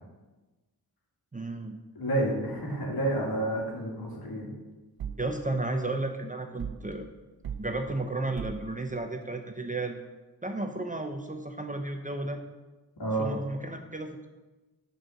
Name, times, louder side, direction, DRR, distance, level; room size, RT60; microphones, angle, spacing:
voice 1, 1.3-1.8 5.2-7.1 7.6-10.0 10.4-12.4 13.2-14.3, right 2 dB, 20° right, 5 dB, 0.6 m, -33 dB
voice 2, 1.9-4.5 13.0-13.3, right 1 dB, 65° left, -2 dB, 2.5 m, -29 dB
sound 1, 5.0-5.3 6.6-6.9 7.4-7.7 8.4-8.7, right 7 dB, 65° right, 0.6 m, -37 dB
9.2 x 4.7 x 6.4 m, 1.2 s
wide cardioid pair, 140°, 39 cm